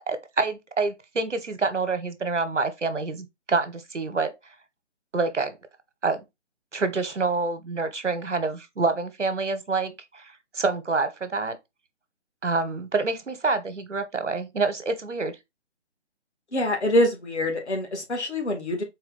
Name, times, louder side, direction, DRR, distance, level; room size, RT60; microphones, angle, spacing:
voice 1, 0.1-4.3 5.1-5.6 6.0-6.2 6.7-11.6 12.4-15.4, right 4 dB, 90° right, 1.0 m, -27 dB
voice 2, 16.5-18.8, left 1 dB, 70° left, 1.7 m, -25 dB
4.2 x 2.3 x 3.9 m
figure-of-eight pair, 150°, 35 cm